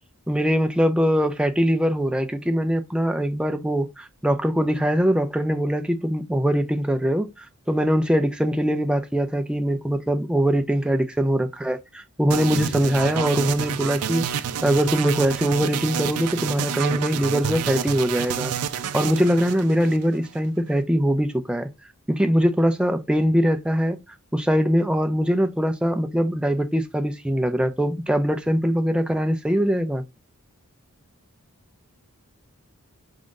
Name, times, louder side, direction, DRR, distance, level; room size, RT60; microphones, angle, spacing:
voice 1, 0.3-14.2 14.6-18.5 18.9-21.7 22.1-24.0 24.3-30.0, equal, 5° right, 0.3 m, -22 dB
sound 1, 12.3-20.4, right 8 dB, 85° right, 0.4 m, -29 dB
3.6 x 2.5 x 3.6 m
head